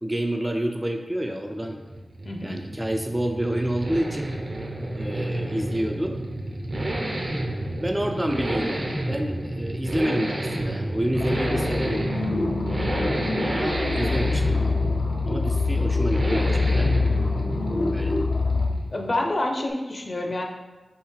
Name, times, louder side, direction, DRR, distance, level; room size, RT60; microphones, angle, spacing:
voice 1, 0.0-1.8 2.4-4.3 4.9-6.2 7.8-8.8 9.1-12.1 13.5-14.8 15.3-17.0 17.9-18.2 20.2-20.4, right 1 dB, 15° right, 3 dB, 0.3 m, -28 dB
sound 1, 1.2-19.2, right 1 dB, 50° right, 0.6 m, -30 dB
voice 2, 2.2-2.6 12.8-13.1 18.9-20.4, left 1 dB, 40° left, 2 dB, 0.6 m, -28 dB
sound 2, 11.1-18.7, left 3 dB, 80° left, 0.6 m, -25 dB
5.5 x 2.8 x 3.2 m, 1.1 s
wide cardioid pair, 100°, 0 cm